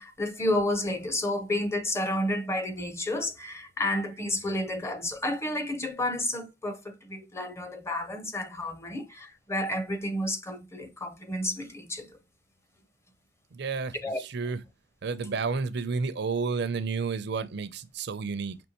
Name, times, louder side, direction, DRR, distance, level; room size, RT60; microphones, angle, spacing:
voice 1, 0.0-12.2 14.0-14.2 15.2-15.3, left 1 dB, 15° left, 0.7 m, -31 dB
voice 2, 13.5-14.6 15.0-18.6, right 4 dB, 65° right, 0.5 m, -31 dB
5.3 x 3.0 x 2.9 m
head